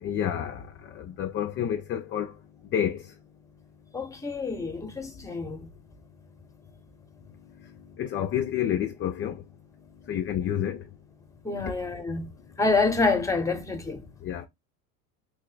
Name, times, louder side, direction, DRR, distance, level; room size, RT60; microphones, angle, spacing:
voice 1, 0.0-2.3 2.7-3.1 7.6-9.4 10.1-10.8 14.2-14.5, left 10 dB, 25° left, 0.4 m, -29 dB
voice 2, 3.9-5.6 11.4-12.3 12.6-14.0, left 3 dB, 5° left, 0.8 m, -27 dB
3.4 x 2.0 x 3.8 m
hypercardioid pair, 90°, 47 cm